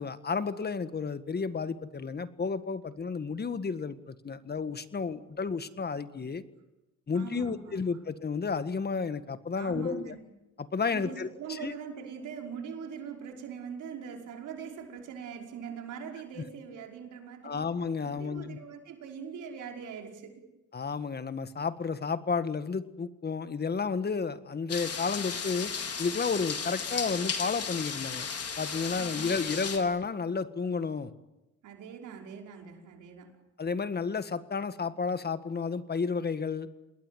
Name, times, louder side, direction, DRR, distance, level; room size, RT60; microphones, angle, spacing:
voice 1, 0.0-6.4 7.1-10.1 10.6-11.7 17.4-18.6 20.7-25.7 26.0-28.3 28.6-31.1 33.6-36.8, left 5 dB, 35° left, 12 dB, 1.7 m, -32 dB
voice 2, 7.1-7.8 9.5-10.2 10.9-17.7 18.0-20.4 28.9-29.6 31.6-33.3, right 7 dB, 80° right, 2 dB, 5.4 m, -42 dB
sound 1, 24.7-29.8, left 6 dB, 55° left, 4.7 m, -35 dB
28.0 x 20.5 x 9.3 m, 0.99 s
cardioid pair, 90°, 30 cm